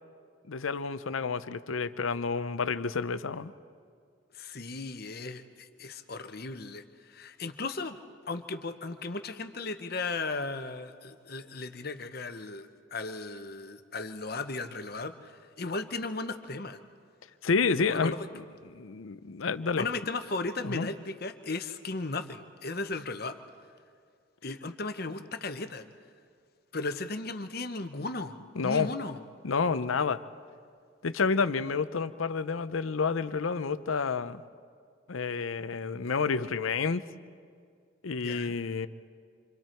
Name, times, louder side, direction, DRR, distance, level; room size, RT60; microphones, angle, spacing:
voice 1, 0.5-3.5 17.4-18.1 18.7-19.9 20.6-20.9 28.6-28.9 29.4-30.2 31.0-34.4 35.1-37.0 38.0-38.9, left 5 dB, 90° left, 14 dB, 0.7 m, -29 dB
voice 2, 4.3-6.8 7.1-8.0 8.3-16.8 17.9-18.3 19.8-23.4 24.4-25.8 26.7-28.3 28.6-29.2 38.2-38.6, left 3 dB, 50° left, 8 dB, 1.0 m, -36 dB
27.5 x 25.5 x 4.5 m, 2.1 s
head